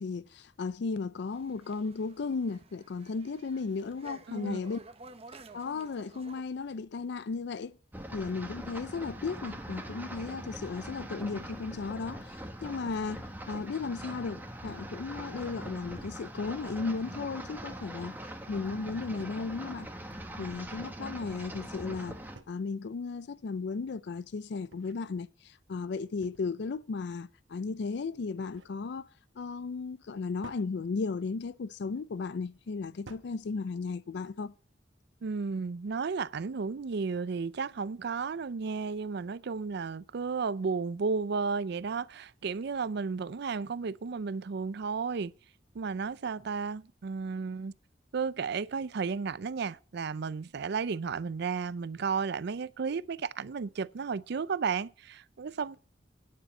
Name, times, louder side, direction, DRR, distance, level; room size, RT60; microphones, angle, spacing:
voice 1, 0.0-4.8 5.5-7.8 8.1-12.3 12.6-18.2 18.5-19.9 20.4-22.2 22.5-29.1 29.4-34.5, left 4 dB, 65° left, 0.4 m, -35 dB
sound 1, 1.3-6.4, right 3 dB, 35° right, 0.9 m, -52 dB
voice 2, 4.3-4.6 35.2-45.3 45.7-47.7 48.1-55.8, right 5 dB, 65° right, 0.5 m, -33 dB
sound 2, 7.9-22.4, right 1 dB, 10° right, 1.3 m, -42 dB
sound 3, 19.2-19.5 20.8-21.4 22.3-22.8 24.4-25.0 26.2-26.7 28.1-28.8 30.4-30.7 31.8-32.1 33.0-33.4, right 2 dB, 85° right, 1.1 m, -54 dB
9.6 x 7.0 x 6.5 m
head